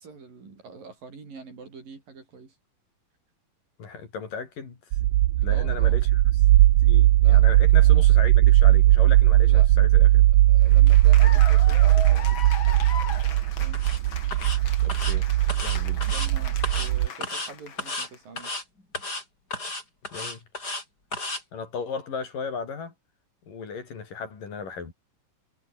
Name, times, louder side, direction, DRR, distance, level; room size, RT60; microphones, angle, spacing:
voice 1, 0.0-2.5 5.5-6.0 7.2-7.4 7.8-8.1 9.4-9.8 10.5-12.4 13.4-13.8 16.1-18.5, right 4 dB, 60° right, 7.5 m, -45 dB
voice 2, 3.8-4.8 5.4-6.4 6.8-10.2 14.8-15.3 15.6-16.0 20.1-20.4 21.5-22.9 23.5-24.9, left 5 dB, 60° left, 5.6 m, -36 dB
sound 1, 4.9-17.1, right 15 dB, 90° right, 1.6 m, -18 dB
Cheering / Applause, 10.6-18.2, left 7 dB, 40° left, 2.1 m, -38 dB
sound 2, 13.7-14.0 14.3-14.6 14.9-15.2 15.5-16.3 16.6-16.9 17.2-17.5 17.8-18.1 18.4-18.6 18.9-19.2 19.5-20.8 21.1-21.4, left 2 dB, 25° left, 7.6 m, -33 dB
omnidirectional pair, 4.5 m